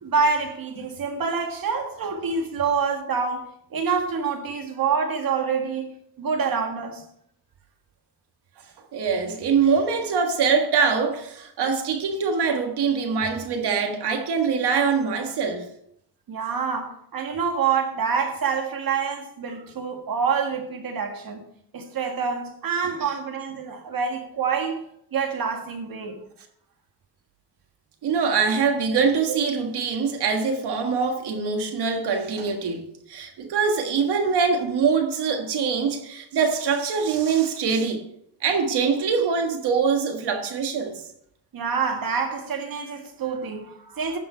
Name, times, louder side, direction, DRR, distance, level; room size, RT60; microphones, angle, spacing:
voice 1, 0.0-5.9 6.2-7.0 16.3-21.4 21.7-24.8 25.1-26.2 29.3-29.4 41.5-44.2, right 5 dB, 60° right, 1.9 m, -26 dB
voice 2, 8.9-15.6 28.0-38.0 38.4-41.0, right 5 dB, 85° right, 1.7 m, -23 dB
10.5 x 6.4 x 4.5 m
cardioid pair, 95°, 39 cm